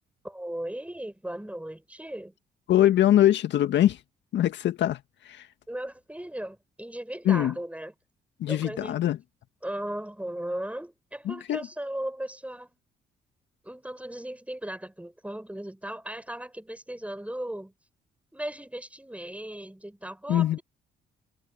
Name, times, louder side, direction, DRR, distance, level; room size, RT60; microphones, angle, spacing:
voice 1, 0.2-2.3 5.7-7.9 8.5-9.0 9.6-12.8 13.6-17.7 18.3-20.6, right 1 dB, 5° right, 7.8 m, -37 dB
voice 2, 2.7-4.0 4.3-5.5 7.2-7.6 8.4-9.2 11.3-11.7 20.3-20.6, left 12 dB, 65° left, 1.8 m, -23 dB
hypercardioid pair, 50°, 20 cm